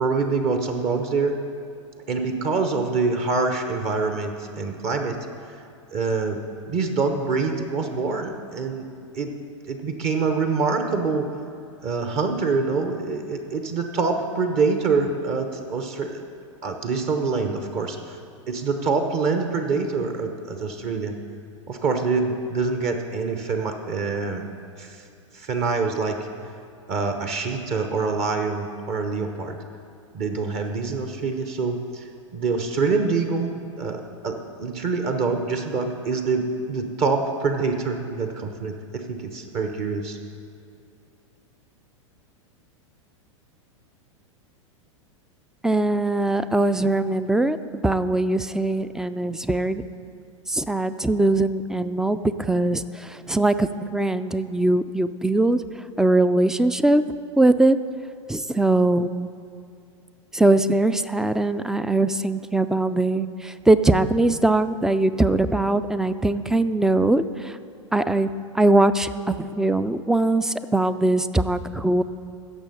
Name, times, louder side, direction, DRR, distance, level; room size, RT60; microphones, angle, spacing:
voice 1, 0.0-1.3 2.1-5.2 5.9-6.4 6.7-8.9 9.1-9.3 9.7-11.3 11.8-16.2 16.6-18.2 18.5-21.2 21.7-24.5 24.8-25.0 25.3-26.2 26.9-29.6 30.1-32.0 32.3-40.2, right 4 dB, 40° right, 5 dB, 1.0 m, -25 dB
voice 2, 45.6-47.6 47.8-49.8 50.5-57.0 57.4-57.8 58.3-59.3 60.3-67.6 67.9-68.3 68.5-72.0, right 2 dB, 5° right, 13 dB, 0.3 m, -21 dB
15.5 x 6.8 x 5.4 m, 2.4 s
figure-of-eight pair, 95°, 16 cm